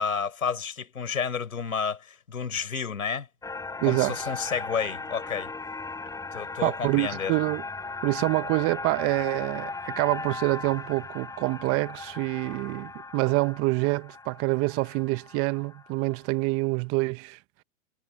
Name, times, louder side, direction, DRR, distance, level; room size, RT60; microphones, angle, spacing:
voice 1, 0.0-3.3 3.8-5.5 6.3-7.3, left 6 dB, 85° left, 4.6 m, -30 dB
sound 1, 3.4-16.0, left 3 dB, 10° left, 5.8 m, -38 dB
voice 2, 3.8-4.2 6.6-7.6 8.0-17.4, right 25 dB, 35° right, 1.3 m, -26 dB
hypercardioid pair, 120°, 41 cm